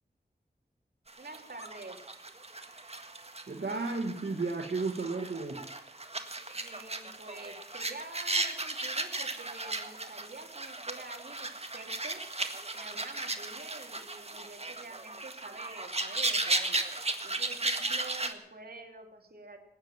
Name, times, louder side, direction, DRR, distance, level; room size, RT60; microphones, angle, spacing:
sound 1, 1.1-18.3, right 2 dB, 35° right, 1.8 m, -36 dB
voice 1, 1.2-2.1 6.5-12.2 12.7-16.9 17.2-19.6, right 3 dB, 65° right, 3 dB, 3.0 m, -48 dB
voice 2, 3.5-5.6, right 3 dB, 80° right, 1 dB, 1.8 m, -33 dB
19.5 x 9.7 x 7.3 m, 0.76 s
wide cardioid pair, 55°, 17 cm